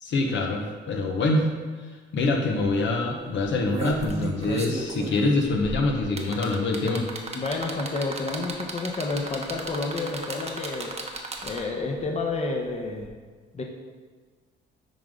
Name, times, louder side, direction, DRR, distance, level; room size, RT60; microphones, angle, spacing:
voice 1, 0.0-1.5 2.1-7.1, left 2 dB, 70° left, 1 dB, 1.1 m, -25 dB
sound 1, 2.2-2.3 2.6-2.8 3.4-11.8 13.0-13.1, right 3 dB, 35° right, 1.0 m, -34 dB
voice 2, 7.3-11.0 11.4-13.1 13.5-13.6, left 3 dB, 35° left, 1 dB, 0.9 m, -30 dB
10.0 x 3.8 x 3.7 m, 1.5 s
cardioid pair, 90°, 20 cm